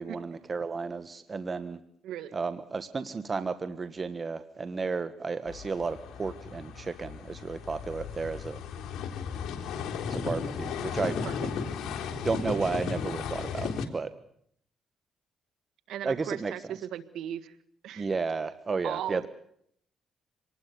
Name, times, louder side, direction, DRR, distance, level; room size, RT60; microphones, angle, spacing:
voice 1, 0.0-1.8 2.3-8.6 10.1-11.2 12.2-14.1 16.0-16.5 18.0-19.3, right 4 dB, 35° right, 12 dB, 1.4 m, -33 dB
voice 2, 2.0-2.4 11.2-11.7 15.9-17.5 17.8-18.1 18.8-19.3, right 11 dB, 85° right, 11 dB, 1.8 m, -37 dB
sound 1, 5.5-13.9, left 6 dB, 75° left, 3.8 m, -35 dB
26.0 x 20.0 x 6.8 m, 0.68 s
cardioid pair, 90°, 0 cm